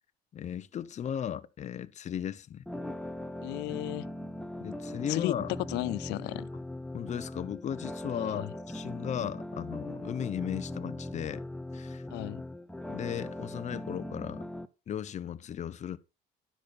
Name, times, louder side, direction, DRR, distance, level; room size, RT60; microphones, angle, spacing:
voice 1, 0.3-2.6 4.6-5.5 6.9-11.4 11.7-12.0 12.9-14.4 14.9-16.0, left 9 dB, 45° left, 0.7 m, -36 dB
sound 1, 2.7-14.7, left 1 dB, 5° left, 0.6 m, -40 dB
voice 2, 3.4-4.1 5.1-5.4 5.7-6.5 8.1-8.5 12.1-12.4, left 20 dB, 85° left, 0.4 m, -34 dB
10.0 x 6.7 x 4.2 m
cardioid pair, 110°, 17 cm